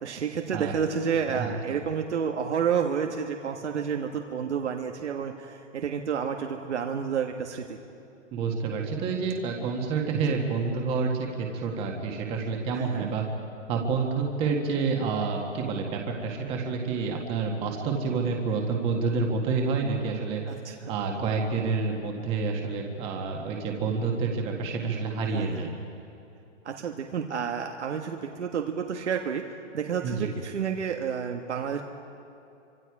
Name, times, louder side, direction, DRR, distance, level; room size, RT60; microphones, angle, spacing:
voice 1, 0.0-7.8 10.3-10.5 12.7-13.1 20.5-20.9 25.3-25.7 26.7-29.4 29.7-31.8, right 7 dB, 65° right, 3 dB, 1.7 m, -30 dB
voice 2, 1.4-1.8 8.3-11.1 11.4-13.2 13.7-20.4 20.9-25.7 30.0-30.3, right 4 dB, 15° right, 1 dB, 1.7 m, -28 dB
28.0 x 25.5 x 4.9 m, 2.8 s
hypercardioid pair, 165°, 37 cm